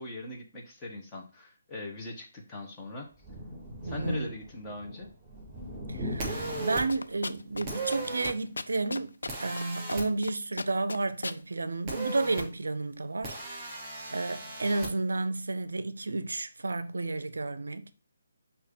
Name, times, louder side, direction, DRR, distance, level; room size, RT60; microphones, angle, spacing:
voice 1, 0.0-3.1 3.8-5.1, left 2 dB, 15° left, 1.4 m, -41 dB
Thunder, 3.1-8.2 8.7-8.8 10.1-10.2, left 1 dB, ahead, 3.1 m, -40 dB
voice 2, 3.8-4.3 5.9-17.9, right 3 dB, 75° right, 0.5 m, -32 dB
sound 1, 6.2-6.8 7.7-8.3 9.3-10.0 11.9-12.4 13.2-14.9, right 3 dB, 25° right, 3.3 m, -36 dB
sound 2, 6.9-7.6 7.9-8.0 8.2-9.6 9.9-10.3 10.6-11.4, left 3 dB, 75° left, 0.4 m, -36 dB
6.4 x 2.9 x 5.3 m
figure-of-eight pair, 145°, 0 cm